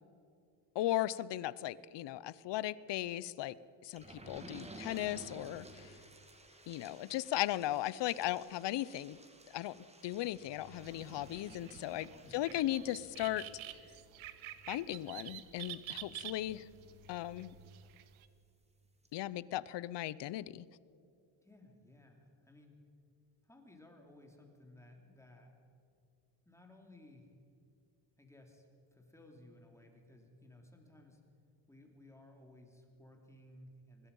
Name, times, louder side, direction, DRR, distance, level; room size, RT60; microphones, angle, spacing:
voice 1, 0.7-3.5 3.8-5.9 6.7-9.2 9.5-13.4 14.7-16.7 17.1-17.5 19.1-20.6, left 14 dB, 65° left, 19 dB, 0.8 m, -37 dB
sound 1, 3.9-18.3 18.7-18.8 19.0-19.1, right 1 dB, 15° right, 2.0 m, -55 dB
sound 2, 10.8-18.3, right 14 dB, 85° right, 1.3 m, -49 dB
voice 2, 12.1-12.4 21.4-22.8 23.4-25.5 26.4-27.3 28.2-31.2 31.7-34.1, left 1 dB, 5° left, 2 dB, 3.0 m, -59 dB
24.0 x 21.0 x 5.5 m, 2.5 s
cardioid pair, 145°, 47 cm